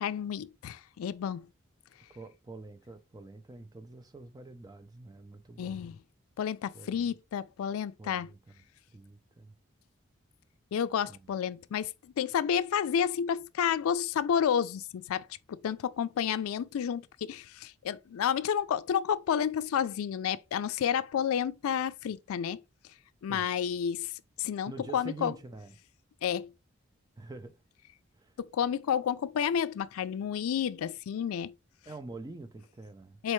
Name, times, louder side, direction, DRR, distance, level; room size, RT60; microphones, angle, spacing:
voice 1, 0.0-1.5 5.6-5.9 6.4-8.3 10.7-22.6 23.2-24.1 24.4-25.3 26.2-26.5 28.4-31.5 33.2-33.3, left 8 dB, 85° left, 0.3 m, -30 dB
voice 2, 2.1-5.9 6.7-7.1 8.0-8.4 8.9-9.5 11.1-11.2 23.3-23.5 24.7-25.8 27.2-27.6 28.2-28.4 31.9-33.2, right 2 dB, 20° right, 0.3 m, -46 dB
4.4 x 3.2 x 3.0 m
head